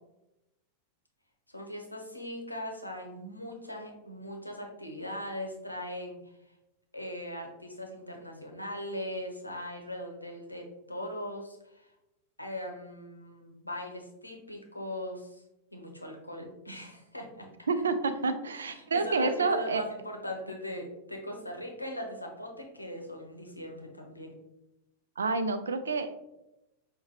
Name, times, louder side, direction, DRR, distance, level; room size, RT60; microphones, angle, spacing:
voice 1, 1.5-6.2 6.9-11.9 12.4-15.4 15.7-17.7 18.5-24.4, left 1 dB, 85° left, 1 dB, 0.7 m, -40 dB
voice 2, 17.7-19.8 25.2-26.1, right 4 dB, 70° right, 9 dB, 0.3 m, -28 dB
5.4 x 2.1 x 2.9 m, 0.91 s
figure-of-eight pair, 90°, 0 cm